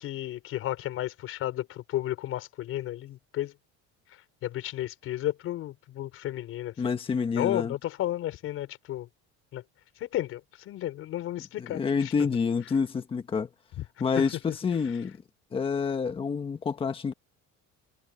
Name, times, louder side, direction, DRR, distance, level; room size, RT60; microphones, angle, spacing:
voice 1, 0.0-3.5 4.1-6.9 7.3-9.1 9.5-9.6 10.0-12.1 13.8-13.9 14.2-14.3, left 14 dB, 45° left, 5.9 m, -33 dB
voice 2, 6.8-7.7 11.6-13.5 14.0-14.4 14.6-15.1 15.5-17.1, left 5 dB, 15° left, 1.5 m, -28 dB
cardioid pair, 175°, 31 cm